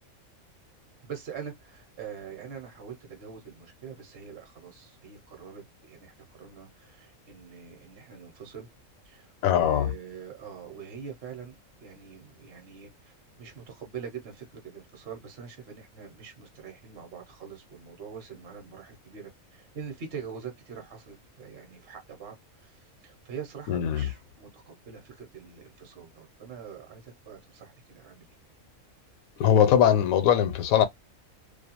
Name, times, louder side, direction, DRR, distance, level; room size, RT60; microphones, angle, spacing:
voice 1, 1.0-8.7 9.0-28.3, right 7 dB, 50° right, 0.9 m, -44 dB
voice 2, 9.4-9.9 23.7-24.1 29.4-30.9, left 9 dB, 80° left, 1.0 m, -21 dB
2.5 x 2.3 x 2.8 m
omnidirectional pair, 1.5 m